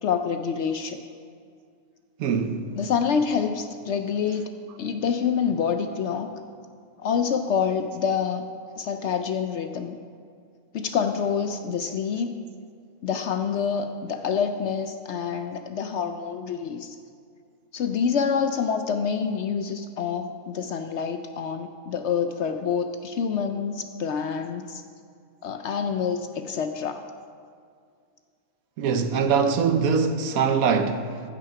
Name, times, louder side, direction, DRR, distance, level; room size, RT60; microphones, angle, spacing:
voice 1, 0.0-1.0 2.8-4.5 4.8-6.3 7.0-8.4 8.8-10.0 10.7-12.4 13.0-17.0 17.7-24.8 25.4-27.0, left 6 dB, 65° left, 0.7 m, -27 dB
voice 2, 2.2-2.7 28.8-31.2, right 5 dB, 75° right, 1.2 m, -23 dB
14.5 x 6.2 x 5.8 m
omnidirectional pair, 1.5 m